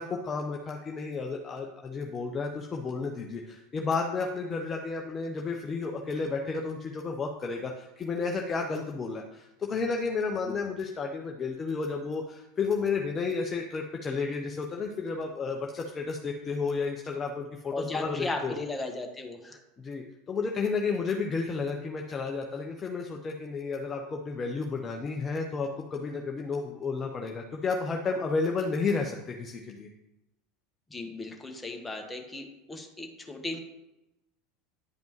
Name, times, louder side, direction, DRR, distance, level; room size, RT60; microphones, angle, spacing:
voice 1, 0.0-18.6 19.8-29.9, left 4 dB, 25° left, 1 dB, 0.7 m, -32 dB
voice 2, 17.7-19.6 30.9-33.6, left 2 dB, 10° left, 3 dB, 1.4 m, -36 dB
10.5 x 5.2 x 3.1 m, 0.95 s
figure-of-eight pair, 80°, 0 cm